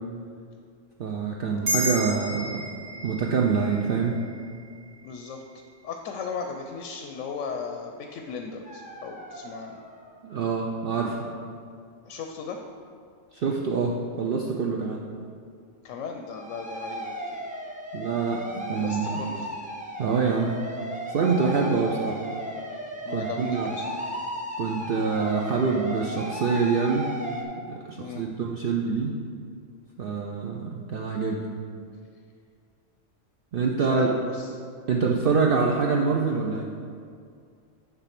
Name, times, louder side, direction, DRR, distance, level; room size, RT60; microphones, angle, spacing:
voice 1, 1.0-2.6 3.0-4.2 10.2-11.2 13.3-15.0 17.9-19.2 20.0-20.5 21.1-22.2 23.1-23.8 24.6-27.1 27.7-29.1 30.0-31.5 33.5-34.1 34.9-36.7, right 5 dB, 55° right, 0 dB, 0.7 m, -25 dB
sound 1, 1.7-6.4, equal, 85° right, 2.5 m, -34 dB
voice 2, 5.0-5.4 5.8-9.8 12.1-12.6 15.8-17.4 18.7-19.5 23.1-23.9 28.0-28.2 33.8-34.5, left 5 dB, 85° left, 3 dB, 1.0 m, -36 dB
sound 2, 8.6-10.1 16.2-27.4, right 1 dB, 10° right, 0.5 m, -35 dB
9.6 x 3.4 x 5.8 m, 2.3 s
omnidirectional pair, 1.3 m